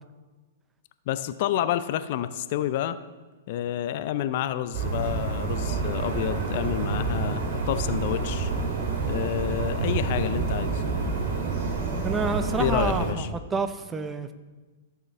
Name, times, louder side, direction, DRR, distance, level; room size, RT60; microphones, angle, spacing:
voice 1, 1.1-3.0 3.5-8.5 9.1-10.8 12.6-13.3, left 11 dB, 55° left, 12 dB, 0.5 m, -29 dB
sound 1, 4.7-13.1, right 4 dB, 55° right, 2.9 m, -28 dB
voice 2, 12.0-14.3, right 4 dB, 15° right, 10 dB, 0.7 m, -29 dB
15.0 x 6.8 x 3.3 m, 1.3 s
hypercardioid pair, 115°, 0 cm